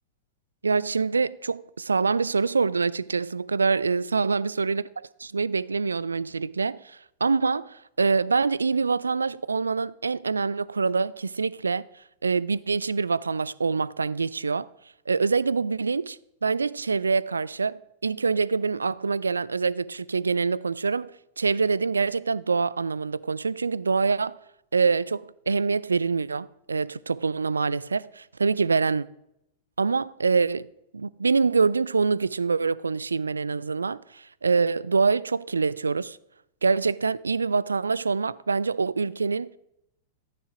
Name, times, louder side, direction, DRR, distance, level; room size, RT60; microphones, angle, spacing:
voice 1, 0.6-4.8 5.2-11.9 12.2-14.7 15.1-24.4 24.7-29.1 29.8-30.7 30.9-36.2 36.6-39.6, right 4 dB, 75° right, 0.4 m, -25 dB
14.0 x 9.4 x 5.0 m
figure-of-eight pair, 95°, 0 cm